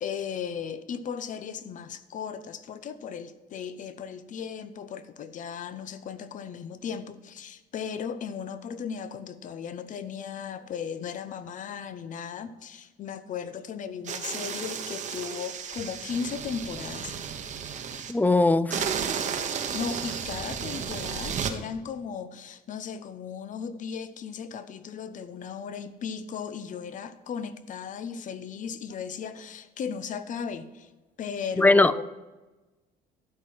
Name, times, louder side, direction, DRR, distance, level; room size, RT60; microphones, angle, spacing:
voice 1, 0.0-17.1 19.7-30.9 31.2-32.0, left 7 dB, 50° left, 0.7 m, -36 dB
sound 1, 14.0-18.1 18.7-21.5, right 7 dB, 45° right, 1.0 m, -33 dB
voice 2, 18.1-18.8 31.6-32.0, left 2 dB, 10° left, 0.3 m, -20 dB
12.0 x 4.7 x 7.5 m
cardioid pair, 110°, 17 cm